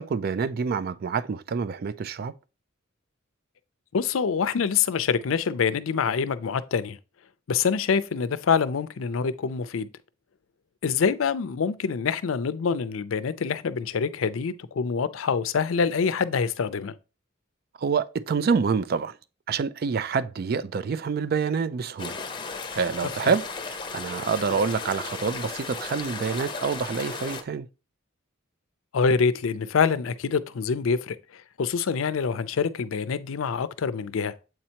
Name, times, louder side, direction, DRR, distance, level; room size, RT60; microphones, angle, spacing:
voice 1, 0.0-2.3 17.8-19.1 19.5-22.2 22.7-27.7, right 5 dB, 50° right, 0.4 m, -27 dB
voice 2, 3.9-7.0 7.5-9.9 10.8-16.9 23.2-23.3 28.9-34.3, left 6 dB, 90° left, 0.5 m, -25 dB
sound 1, 22.0-27.4, left 4 dB, 25° left, 0.7 m, -35 dB
7.7 x 4.3 x 2.8 m
head